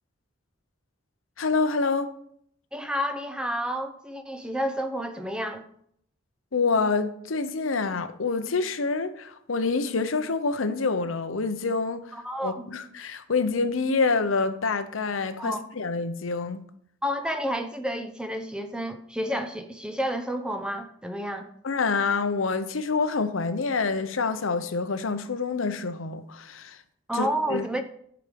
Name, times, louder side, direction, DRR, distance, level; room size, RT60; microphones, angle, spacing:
voice 1, 1.4-2.1 6.5-12.0 12.4-16.6 21.6-26.8 27.1-27.7, left 4 dB, 90° left, 0.8 m, -27 dB
voice 2, 2.7-5.6 12.1-12.7 15.4-15.6 17.0-21.5 27.1-27.8, equal, 5° right, 0.7 m, -30 dB
10.5 x 5.1 x 5.1 m
head